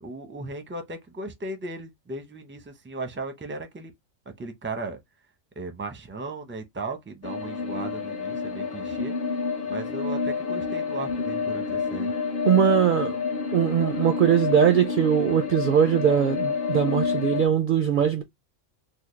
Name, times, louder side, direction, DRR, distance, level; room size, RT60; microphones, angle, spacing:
voice 1, 0.0-3.9 4.4-5.0 5.6-9.1 9.7-12.1, right 2 dB, 15° right, 0.5 m, -36 dB
sound 1, 7.2-17.5, left 5 dB, 50° left, 1.0 m, -29 dB
voice 2, 12.4-13.2 13.5-18.2, right 8 dB, 55° right, 0.6 m, -21 dB
4.2 x 2.0 x 3.1 m
omnidirectional pair, 1.3 m